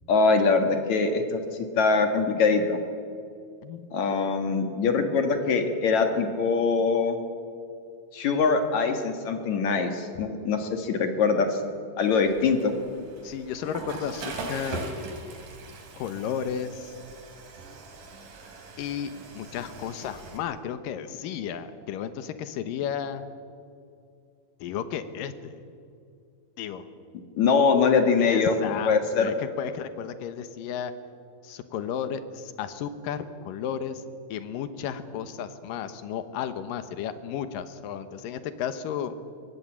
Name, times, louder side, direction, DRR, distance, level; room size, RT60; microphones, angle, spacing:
voice 1, 0.1-2.8 3.9-7.2 8.1-11.6 12.0-12.7 27.4-29.3, left 4 dB, 60° left, 6 dB, 2.6 m, -23 dB
Water / Toilet flush, 12.0-20.4, right 3 dB, 65° right, 4.2 m, -41 dB
voice 2, 13.2-14.9 16.0-16.9 18.8-23.2 24.6-25.5 26.6-26.9 28.2-30.9 31.4-34.0 34.3-39.2, left 8 dB, 80° left, 11 dB, 2.8 m, -33 dB
22.5 x 17.5 x 8.8 m, 2.4 s
omnidirectional pair, 3.9 m